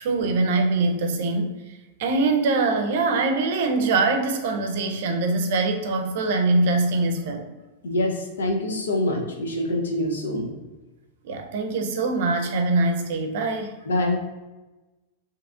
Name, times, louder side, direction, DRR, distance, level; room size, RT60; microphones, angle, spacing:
voice 1, 0.0-1.6 2.0-7.5 11.2-13.8, right 3 dB, 65° right, 4 dB, 0.5 m, -23 dB
voice 2, 7.8-10.5 13.8-14.2, left 1 dB, 80° left, 1 dB, 0.6 m, -25 dB
2.8 x 2.4 x 3.5 m, 1.1 s
hypercardioid pair, 105°, 0 cm